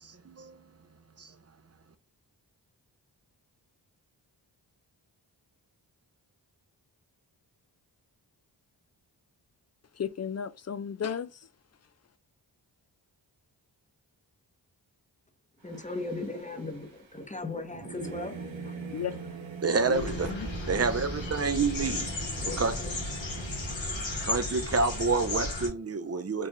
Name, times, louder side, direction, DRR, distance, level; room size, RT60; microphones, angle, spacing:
voice 1, 0.0-0.6 1.2-1.3 19.6-20.3 20.7-22.1 22.6-22.8 24.2-26.5, right 4 dB, 35° right, 0.7 m, -28 dB
voice 2, 9.9-11.4 18.9-19.1 19.9-20.5, left 8 dB, 35° left, 0.4 m, -34 dB
voice 3, 15.6-18.7 22.0-22.1 22.4-23.3, left 2 dB, 15° left, 0.9 m, -38 dB
Singing / Musical instrument, 15.6-25.2, right 5 dB, 85° right, 1.0 m, -43 dB
sound 1, 19.9-25.7, left 2 dB, 80° left, 1.6 m, -34 dB
4.5 x 2.5 x 3.1 m
cardioid pair, 40°, 44 cm